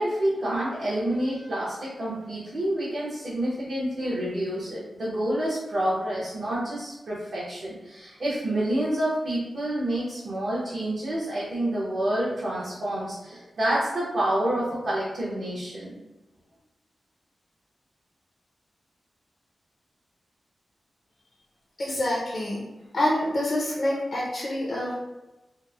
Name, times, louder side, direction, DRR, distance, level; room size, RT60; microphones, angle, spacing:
voice 1, 0.0-16.0, right 1 dB, 60° right, -9 dB, 0.7 m, -28 dB
voice 2, 21.8-22.6 22.9-24.9, left 1 dB, 55° left, -5 dB, 0.5 m, -26 dB
2.9 x 2.0 x 2.3 m, 1.0 s
wide cardioid pair, 140°, 0 cm